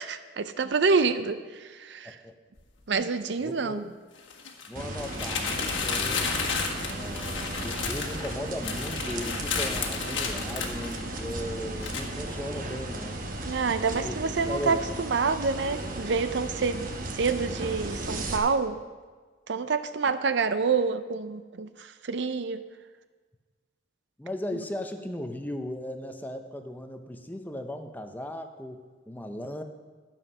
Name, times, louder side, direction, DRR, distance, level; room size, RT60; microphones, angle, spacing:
voice 1, 0.0-2.2 2.9-3.8 13.5-18.8 19.5-22.6, right 4 dB, 65° right, 11 dB, 0.5 m, -27 dB
sound 1, 2.6-2.7 4.2-11.4 11.8-12.0, left 5 dB, 80° left, 1.5 m, -32 dB
voice 2, 3.4-3.9 4.7-5.6 5.8-6.2 6.9-13.2 13.9-14.2 14.4-15.0 20.1-20.2 24.2-29.6, left 1 dB, 10° left, 6 dB, 0.6 m, -37 dB
sound 2, 4.8-18.4, right 1 dB, 45° right, 1.1 m, -35 dB
12.5 x 7.2 x 5.5 m, 1.4 s
head